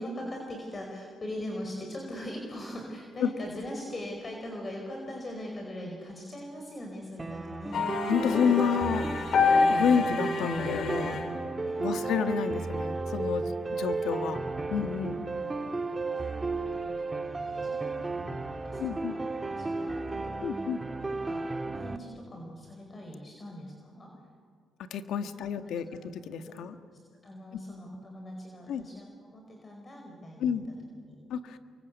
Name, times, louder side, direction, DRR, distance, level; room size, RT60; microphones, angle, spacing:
voice 1, 0.0-7.9 11.7-12.2 16.4-17.1 17.6-18.1 18.6-20.7 21.0-24.1 25.2-25.3 25.8-25.9 26.4-26.5 27.2-30.5 31.0-31.2, left 1 dB, 30° left, 1 dB, 5.0 m, -41 dB
sound 1, 7.2-22.0, right 3 dB, 25° right, 1.7 m, -34 dB
sound 2, 7.7-11.6, left 4 dB, 60° left, 3.0 m, -28 dB
voice 2, 8.1-9.1 9.7-11.2 11.8-14.4 14.7-15.2 18.8-19.1 20.4-20.8 24.9-25.9 26.1-26.7 28.7-28.9 30.4-30.7 31.3-31.6, left 7 dB, 80° left, 8 dB, 1.7 m, -29 dB
29.5 x 24.5 x 8.4 m, 2.1 s
cardioid pair, 90°, 0 cm